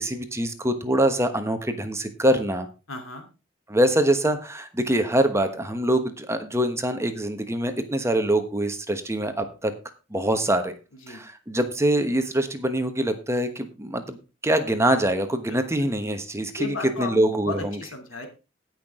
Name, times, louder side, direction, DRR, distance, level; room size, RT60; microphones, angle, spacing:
voice 1, 0.0-2.7 3.7-9.7 10.1-10.7 11.1-14.2 14.4-17.6, right 1 dB, 15° right, 8 dB, 1.1 m, -24 dB
voice 2, 2.9-3.3 11.0-11.2 15.5-15.6 16.6-18.3, left 3 dB, 85° left, 4 dB, 2.9 m, -34 dB
18.0 x 6.0 x 3.7 m, 0.30 s
head